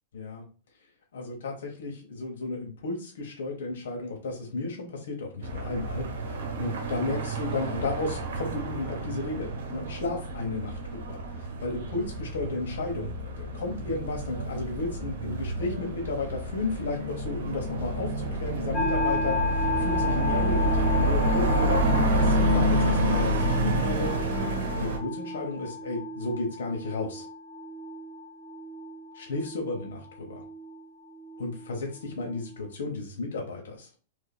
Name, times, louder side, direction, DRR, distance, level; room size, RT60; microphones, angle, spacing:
voice 1, 0.1-0.5 1.1-24.4 24.7-27.3 29.1-30.4 31.4-33.9, left 3 dB, 85° left, 1 dB, 1.1 m, -33 dB
sound 1, 5.4-25.0, right 1 dB, 75° right, 1.0 m, -28 dB
sound 2, 18.7-32.6, left 3 dB, 25° left, 0.8 m, -34 dB
3.1 x 2.8 x 4.2 m, 0.39 s
supercardioid pair, 155°, 0 cm